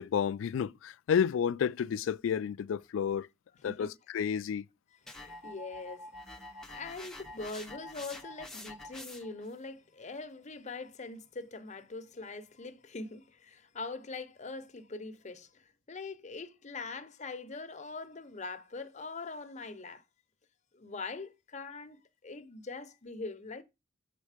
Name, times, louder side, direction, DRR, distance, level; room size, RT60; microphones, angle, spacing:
voice 1, 0.0-3.3 3.6-4.6, left 7 dB, 70° left, 0.3 m, -31 dB
voice 2, 4.9-6.1 6.5-20.0 20.7-23.6, left 3 dB, 35° left, 0.7 m, -43 dB
sound 1, 5.1-9.5, left 1 dB, ahead, 0.7 m, -47 dB
7.3 x 4.0 x 4.9 m
head